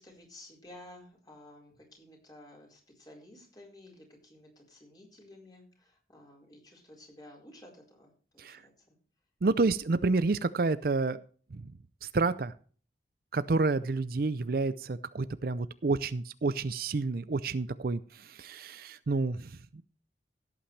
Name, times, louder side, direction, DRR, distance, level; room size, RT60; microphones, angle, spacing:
voice 1, 0.0-9.0, left 1 dB, 20° left, 0 dB, 4.5 m, -53 dB
voice 2, 9.4-11.2 11.5-11.7 12.0-12.5 13.3-19.8, right 3 dB, 55° right, 15 dB, 0.5 m, -29 dB
17.0 x 8.7 x 3.3 m, 0.42 s
head